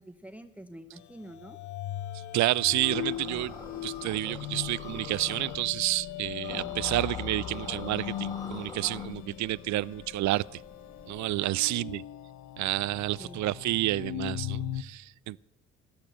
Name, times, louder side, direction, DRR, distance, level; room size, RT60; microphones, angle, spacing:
voice 1, 0.0-1.6 11.4-11.6 13.2-13.4, right 1 dB, 5° right, 0.7 m, -47 dB
sound 1, 1.0-14.8, left 12 dB, 70° left, 0.7 m, -39 dB
voice 2, 2.1-3.5 3.8-10.6 11.1-12.0 12.6-15.4, right 16 dB, 70° right, 0.4 m, -30 dB
Wind, 2.7-11.4, left 2 dB, 30° left, 2.4 m, -54 dB
sound 2, 2.8-5.6 6.4-9.1, left 2 dB, 15° left, 2.2 m, -44 dB
12.0 x 11.5 x 7.6 m
cardioid pair, 90°, 30 cm